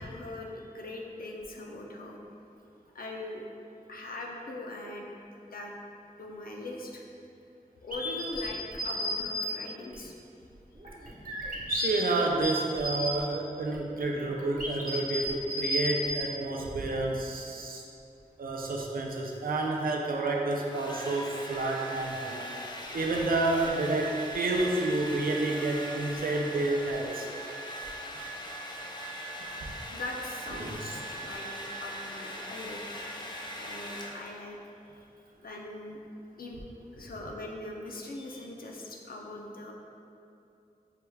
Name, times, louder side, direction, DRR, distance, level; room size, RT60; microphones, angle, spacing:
voice 1, 0.0-2.2 2.9-3.4 3.9-5.1 5.5-5.7 6.2-7.1 7.8-10.2 29.9-31.5 31.8-32.8 33.6-34.7 35.4-36.0 36.4-36.6 36.9-39.7, left 2 dB, 90° left, 0 dB, 0.5 m, -41 dB
sound 1, 7.9-9.5 9.9-10.0 10.7-11.9 12.3-13.2 13.7-16.2, left 1 dB, 70° right, 0.9 m, -32 dB
voice 2, 11.7-17.8 18.4-22.5 22.9-27.3 29.4-29.5 30.6-30.7, right 2 dB, 90° right, 0 dB, 0.4 m, -30 dB
Domestic sounds home sounds, 20.3-34.5, equal, 30° left, 0.4 m, -40 dB
5.7 x 2.3 x 3.3 m, 2.6 s
wide cardioid pair, 65°, 15 cm